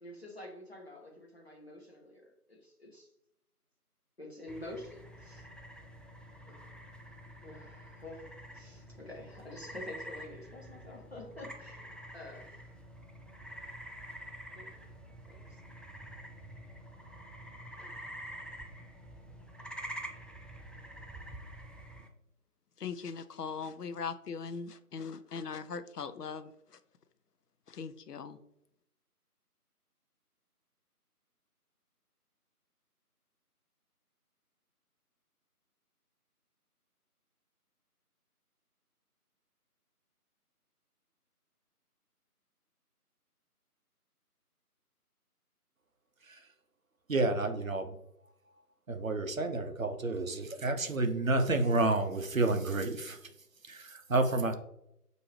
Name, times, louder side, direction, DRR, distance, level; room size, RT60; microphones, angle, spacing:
voice 1, 0.0-3.1 4.2-5.5 6.4-6.6 7.4-12.8 14.6-14.9 15.3-15.6, left 1 dB, 40° left, -1 dB, 1.0 m, -48 dB
sound 1, 4.5-22.1, equal, ahead, 0.3 m, -47 dB
voice 2, 22.8-26.8 27.7-28.4, left 5 dB, 85° left, 11 dB, 0.6 m, -40 dB
voice 3, 47.1-48.0 48.9-53.3 53.6-54.5, right 2 dB, 60° right, 7 dB, 0.6 m, -30 dB
5.9 x 2.7 x 3.1 m, 0.79 s
figure-of-eight pair, 175°, 46 cm